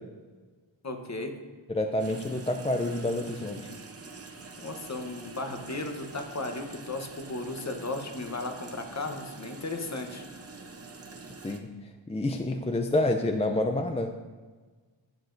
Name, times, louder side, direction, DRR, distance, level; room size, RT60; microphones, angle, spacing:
voice 1, 0.8-1.3 4.6-10.2, left 2 dB, 35° left, 4 dB, 1.0 m, -35 dB
voice 2, 1.7-3.7 11.4-11.7 12.1-14.1, left 1 dB, 15° left, 4 dB, 0.4 m, -28 dB
sound 1, 2.0-11.6, right 3 dB, 30° right, 0.7 m, -45 dB
11.5 x 8.3 x 2.6 m, 1.4 s
wide cardioid pair, 110°, 48 cm